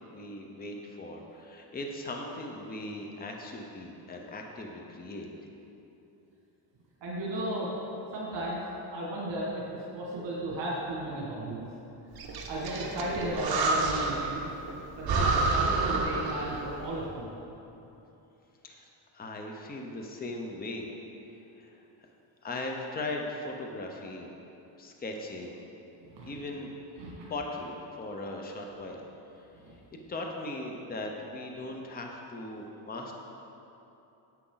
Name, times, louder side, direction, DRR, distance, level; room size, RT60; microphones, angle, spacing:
voice 1, 0.1-5.3 18.6-18.9 19.1-20.9 21.6-21.8 22.4-24.3 24.8-25.6 26.3-26.7 27.3-29.0 29.7-33.1, left 2 dB, 20° left, 1 dB, 0.7 m, -38 dB
voice 2, 7.0-7.7 8.1-8.6 8.9-11.7 12.5-14.5 14.9-17.3 26.0-26.3 27.0-27.1 29.6-29.7, right 1 dB, 75° right, -5 dB, 2.0 m, -34 dB
Breathing, 12.2-14.4 14.7-14.8 15.0-16.7, right 3 dB, 55° right, 1.0 m, -28 dB
10.0 x 7.4 x 3.9 m, 2.9 s
cardioid pair, 165°, 43 cm